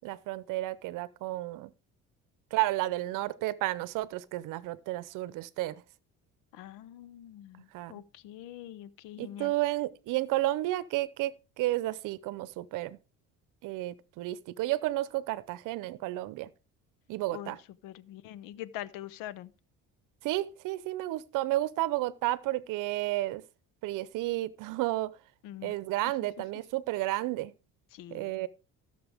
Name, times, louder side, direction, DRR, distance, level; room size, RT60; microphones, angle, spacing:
voice 1, 0.0-1.7 2.5-5.8 7.7-8.0 9.2-13.0 13.6-16.5 17.1-17.6 20.2-23.4 23.8-25.2 25.6-27.5 28.1-28.5, right 16 dB, 75° right, 0.7 m, -32 dB
voice 2, 6.5-9.5 17.3-17.6 17.8-19.5 25.4-25.8 27.9-28.3, left 13 dB, 85° left, 0.8 m, -44 dB
16.0 x 6.8 x 3.4 m
cardioid pair, 115°, 32 cm